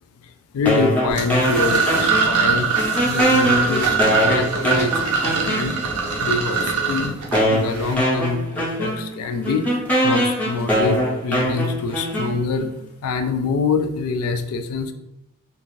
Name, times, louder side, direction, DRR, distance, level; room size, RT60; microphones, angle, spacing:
voice 1, 0.2-2.7 3.0-5.8 6.2-7.2 7.5-12.7 13.0-14.9, left 4 dB, 70° left, 8 dB, 0.3 m, -25 dB
sound 1, 0.7-2.5 2.8-6.0 6.7-6.8 7.3-12.7, equal, 5° left, 0.7 m, -22 dB
sound 2, 1.1-7.9, right 5 dB, 80° right, 0.6 m, -22 dB
2.5 x 2.4 x 3.0 m, 0.90 s
head